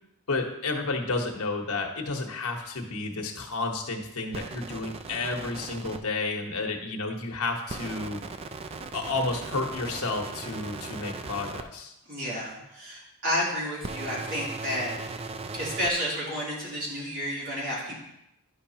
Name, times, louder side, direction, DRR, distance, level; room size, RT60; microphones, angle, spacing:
voice 1, 0.3-8.2 8.9-11.9, left 3 dB, 75° left, 2 dB, 1.2 m, -31 dB
sound 1, 4.3-6.0 7.7-11.6 13.8-15.9, right 4 dB, 25° right, 0.4 m, -38 dB
voice 2, 12.1-15.2 15.5-18.0, equal, 60° right, -6 dB, 3.1 m, -31 dB
10.5 x 5.7 x 2.8 m, 0.82 s
head